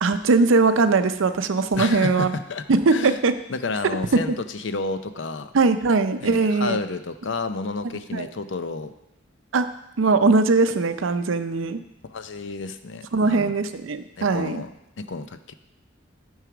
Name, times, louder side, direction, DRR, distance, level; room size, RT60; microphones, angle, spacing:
voice 1, 0.0-2.4 2.7-3.3 4.3-4.4 5.5-6.8 8.1-8.3 9.5-9.7 10.0-11.8 13.1-14.6, right 3 dB, 80° right, 11 dB, 0.6 m, -20 dB
voice 2, 1.8-2.6 2.9-3.2 3.5-5.5 6.2-8.9 12.1-13.5 14.2-14.7 15.0-15.5, left 3 dB, 65° left, 10 dB, 0.6 m, -30 dB
9.0 x 4.8 x 6.0 m, 0.86 s
head